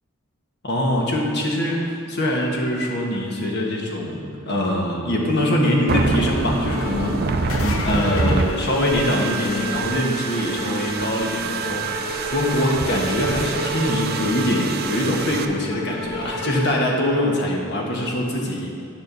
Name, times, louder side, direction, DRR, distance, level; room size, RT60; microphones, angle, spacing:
voice 1, 0.6-18.7, left 1 dB, 55° left, -1 dB, 1.4 m, -23 dB
sound 1, 5.9-15.4, right 3 dB, 50° right, 0.5 m, -26 dB
sound 2, 6.4-6.5 6.7-8.5 8.9-9.9 10.2-16.7, right 1 dB, 15° left, 1.5 m, -31 dB
sound 3, 7.3-9.6 15.1-15.2 17.0-17.1, left 3 dB, 85° left, 0.8 m, -32 dB
9.2 x 4.4 x 6.7 m, 2.4 s
head